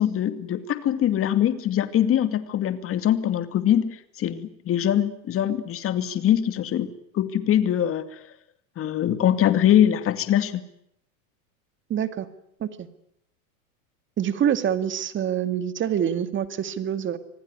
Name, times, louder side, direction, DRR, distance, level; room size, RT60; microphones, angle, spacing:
voice 1, 0.0-8.1 8.8-10.6, left 10 dB, 30° left, 11 dB, 2.4 m, -23 dB
voice 2, 11.9-12.3 12.6-12.9 14.2-17.2, right 9 dB, 25° right, 12 dB, 2.2 m, -26 dB
26.0 x 18.5 x 9.7 m, 0.76 s
supercardioid pair, 130°, 42 cm